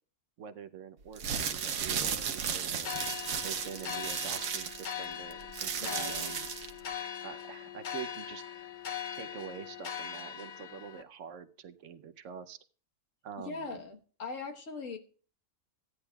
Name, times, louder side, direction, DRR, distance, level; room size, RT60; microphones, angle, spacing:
voice 1, 0.4-3.0 3.4-6.5 7.2-8.4 9.1-12.6 13.2-13.8, right 8 dB, 70° right, 10 dB, 1.0 m, -45 dB
sound 1, 1.1-6.8, right 7 dB, 85° right, 1.2 m, -34 dB
sound 2, 2.8-11.0, left 8 dB, 50° left, 0.6 m, -41 dB
voice 2, 5.8-6.3 13.4-15.0, left 3 dB, 70° left, 5 dB, 1.6 m, -41 dB
16.0 x 9.8 x 2.3 m, 0.41 s
omnidirectional pair, 1.4 m